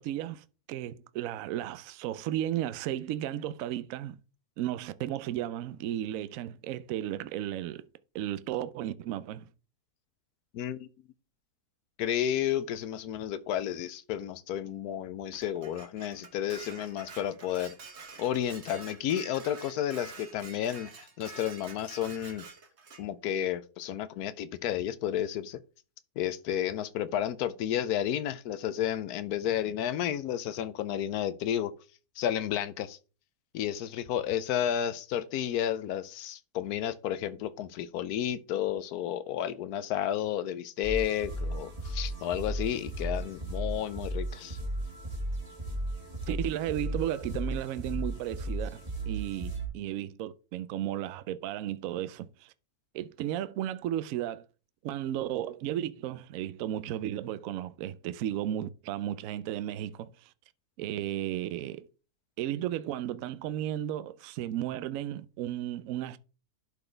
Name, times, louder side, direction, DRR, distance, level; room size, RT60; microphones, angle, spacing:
voice 1, 0.0-4.2 4.6-7.8 8.1-9.5 46.3-52.5 52.9-54.4 54.8-60.3 60.8-61.9 62.4-66.2, right 12 dB, 70° right, 0.8 m, -34 dB
voice 2, 10.5-10.9 12.0-17.7 18.2-22.4 23.0-25.6 26.2-31.7 32.2-33.0 33.5-44.6, left 10 dB, 75° left, 1.1 m, -32 dB
Dishes pots and pans, 15.3-23.0, right 4 dB, 45° right, 1.4 m, -48 dB
sound 1, 40.8-49.7, right 1 dB, 20° right, 1.6 m, -35 dB
11.5 x 4.1 x 3.3 m
omnidirectional pair, 1.8 m